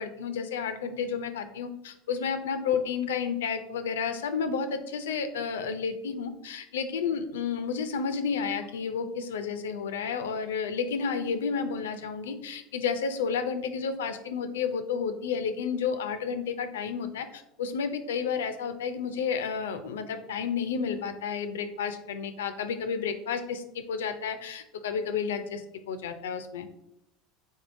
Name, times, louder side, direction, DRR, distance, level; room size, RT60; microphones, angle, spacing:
voice 1, 0.0-26.7, left 6 dB, 90° left, 9 dB, 0.4 m, -31 dB
3.7 x 3.5 x 2.5 m, 0.82 s
hypercardioid pair, 95°, 0 cm